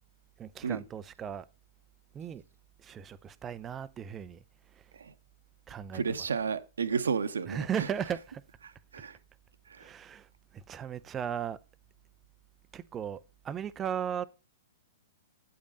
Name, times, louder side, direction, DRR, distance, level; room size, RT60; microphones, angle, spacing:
voice 1, 0.4-1.5 2.1-2.4 2.8-4.4 4.8-4.9 5.7-6.2 7.5-8.4 9.8-11.6 12.7-13.2 13.4-14.3, right 8 dB, 20° right, 0.4 m, -36 dB
voice 2, 5.9-7.9 8.9-9.2 9.7-9.8, right 6 dB, 65° right, 0.8 m, -32 dB
9.0 x 5.1 x 5.3 m
figure-of-eight pair, 110°, 0 cm